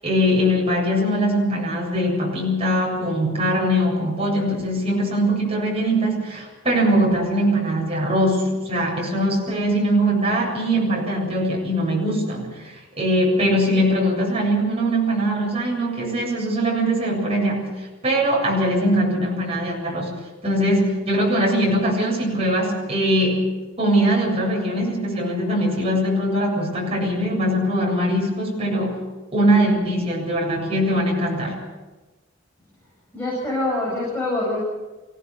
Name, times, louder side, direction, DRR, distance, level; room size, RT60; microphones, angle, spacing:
voice 1, 0.0-20.1 20.4-29.0 29.3-31.6, equal, 30° right, -2 dB, 7.9 m, -21 dB
voice 2, 33.1-34.6, left 2 dB, 10° left, -7 dB, 7.8 m, -25 dB
25.5 x 17.5 x 6.9 m, 1.2 s
head